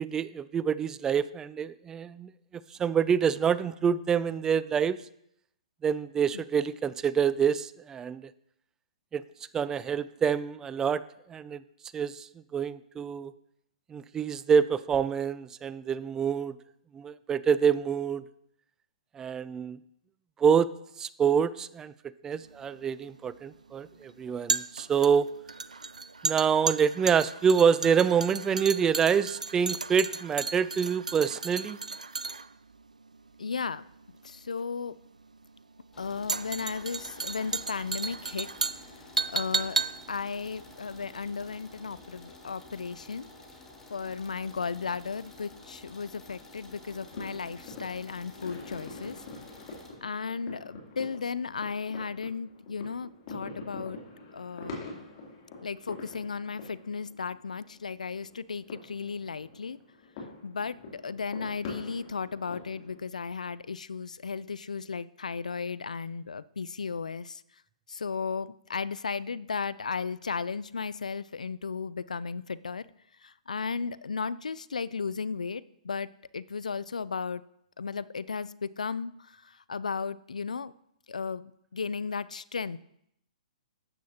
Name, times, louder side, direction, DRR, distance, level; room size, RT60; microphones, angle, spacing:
voice 1, 0.0-2.3 2.8-5.0 5.8-8.2 9.1-9.2 9.5-11.0 11.3-11.6 11.9-12.3 12.5-13.3 13.9-16.6 16.9-18.2 19.2-19.8 20.4-20.7 21.0-21.9 22.2-25.3 26.2-31.8, right 7 dB, 15° right, 17 dB, 0.3 m, -26 dB
sound 1, 22.4-41.6 41.9-42.0, right 4 dB, 90° right, 0.4 m, -34 dB
voice 2, 33.4-33.8 34.2-35.0 36.0-38.5 39.3-39.8 40.1-43.3 43.9-49.2 50.0-54.0 54.3-54.8 55.6-59.8 60.4-67.4 67.9-72.8 73.2-76.1 76.3-77.4 77.8-79.1 79.7-80.7 81.1-82.8, left 5 dB, 80° left, 19 dB, 0.4 m, -35 dB
sound 2, 35.9-49.9, left 2 dB, 10° left, 1.7 m, -51 dB
sound 3, 46.8-63.0, left 3 dB, 45° left, 2.9 m, -45 dB
12.5 x 8.2 x 2.9 m, 0.75 s
figure-of-eight pair, 125°, 4 cm